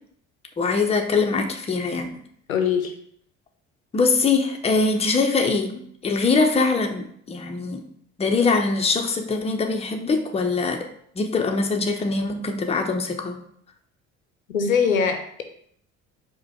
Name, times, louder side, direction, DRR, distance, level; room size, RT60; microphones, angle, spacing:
voice 1, 0.6-2.1 3.9-7.8 8.2-10.9 11.2-13.4, left 4 dB, 15° left, 4 dB, 0.6 m, -23 dB
voice 2, 2.5-2.9 14.5-15.4, left 6 dB, 90° left, 6 dB, 0.5 m, -22 dB
4.8 x 2.2 x 4.6 m, 0.66 s
figure-of-eight pair, 55°, 39 cm